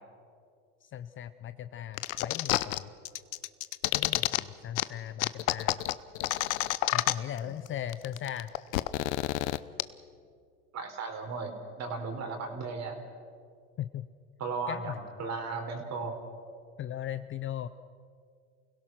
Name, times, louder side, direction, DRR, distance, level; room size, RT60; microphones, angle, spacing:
voice 1, 0.8-2.9 3.9-5.8 6.9-8.5 13.8-14.0 14.7-15.0 16.8-17.7, left 11 dB, 30° left, 12 dB, 0.6 m, -38 dB
sound 1, 2.0-2.8 3.1-4.4 4.8-4.9 5.2-7.4 7.7-7.8 7.9-9.8, left 17 dB, 65° left, 0.9 m, -28 dB
voice 2, 10.7-13.0 14.4-16.2, right 4 dB, 40° right, 5 dB, 4.1 m, -36 dB
29.5 x 17.0 x 6.0 m, 2.3 s
hypercardioid pair, 90°, 43 cm